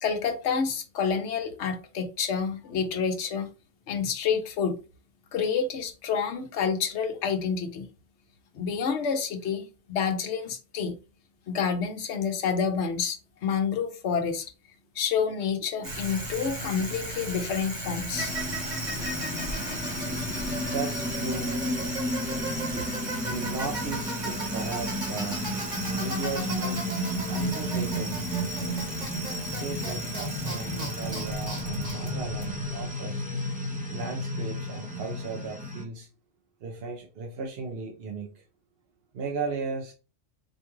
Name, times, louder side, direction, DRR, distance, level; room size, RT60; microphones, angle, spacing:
voice 1, 0.0-3.5 3.9-4.8 5.3-7.9 8.5-10.9 11.5-14.4 15.0-18.3, left 6 dB, 70° left, 1.0 m, -28 dB
Bicycle, 15.8-32.9, right 1 dB, 40° right, 1.3 m, -35 dB
sound 1, 18.1-35.8, equal, 10° right, 0.5 m, -33 dB
voice 2, 20.6-21.6 22.7-22.9 23.2-25.5 26.0-26.9 27.3-28.8 29.4-33.3 33.9-36.1 36.6-38.4 39.1-39.9, right 4 dB, 60° right, 0.8 m, -36 dB
4.4 x 2.3 x 3.0 m
omnidirectional pair, 1.3 m